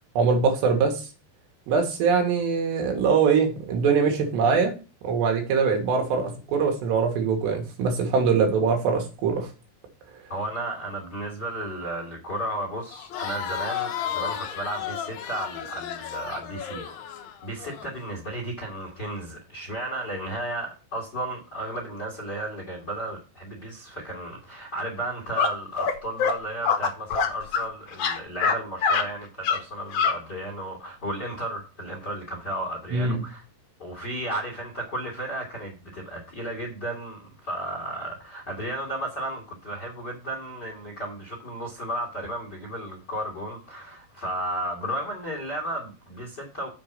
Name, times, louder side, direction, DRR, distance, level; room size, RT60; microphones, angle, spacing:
voice 1, 0.2-1.1 1.7-4.7 5.0-9.5 32.9-33.2, right 5 dB, 80° right, 3.9 m, -22 dB
voice 2, 10.3-16.8 17.2-33.4 33.8-46.7, right 1 dB, 35° left, 1.7 m, -34 dB
Crowd, 12.9-17.9, left 9 dB, 85° left, 1.6 m, -33 dB
sound 1, 25.3-25.5 25.8-25.9 26.2-26.3 26.6-27.7 27.9-28.6 28.8-29.0 29.4-29.6 29.9-30.1, left 6 dB, 65° left, 1.9 m, -23 dB
7.2 x 4.7 x 6.9 m
omnidirectional pair, 5.0 m